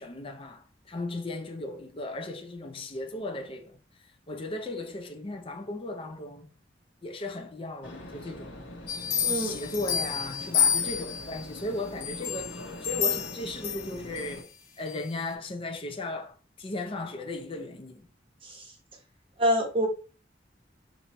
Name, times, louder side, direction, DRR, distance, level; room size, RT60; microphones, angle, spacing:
voice 1, 0.0-3.8 4.3-6.6 7.0-8.6 9.3-14.5 14.8-18.1, left 2 dB, 30° left, 0.5 m, -36 dB
sound 1, 7.8-14.4, left 1 dB, 80° left, 1.1 m, -43 dB
sound 2, 8.9-11.4 12.0-14.4 14.9-15.0, left 8 dB, 55° left, 0.9 m, -29 dB
voice 2, 9.2-9.6 18.4-18.7 19.4-19.9, equal, 30° right, 1.2 m, -26 dB
3.0 x 2.6 x 4.2 m
head